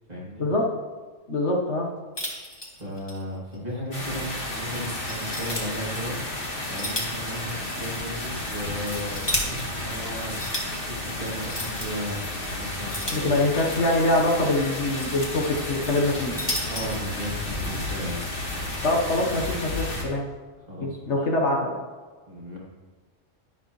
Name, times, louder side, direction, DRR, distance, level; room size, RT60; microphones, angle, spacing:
voice 1, 0.1-0.5 2.7-6.2 6.7-13.5 16.7-18.2 20.6-21.0 22.3-22.6, equal, 30° right, -6 dB, 2.9 m, -35 dB
voice 2, 1.3-1.9 13.1-16.3 18.8-20.2 20.8-21.7, left 2 dB, 60° left, 0 dB, 1.6 m, -24 dB
sound 1, 2.2-3.2 3.5-3.6 4.2-4.3 5.1-5.6 6.5-7.3 7.6-7.7 8.6-9.4 10.2-10.6 11.4-11.9 12.9-13.7 14.6-15.3 16.1-17.0, left 1 dB, 20° left, 1.8 m, -32 dB
sound 2, 3.9-20.0, left 1 dB, 45° left, 2.1 m, -32 dB
11.0 x 11.0 x 3.2 m, 1.4 s
omnidirectional pair, 1.3 m